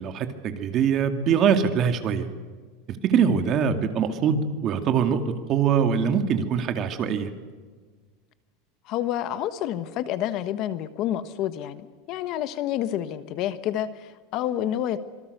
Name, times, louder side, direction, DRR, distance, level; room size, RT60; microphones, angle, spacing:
voice 1, 0.0-2.3 2.9-5.2 5.5-7.3, right 7 dB, 35° right, 7 dB, 2.3 m, -23 dB
voice 2, 8.8-15.0, left 11 dB, 40° left, 12 dB, 1.3 m, -29 dB
26.0 x 23.5 x 6.8 m, 1.5 s
supercardioid pair, 160°, 0 cm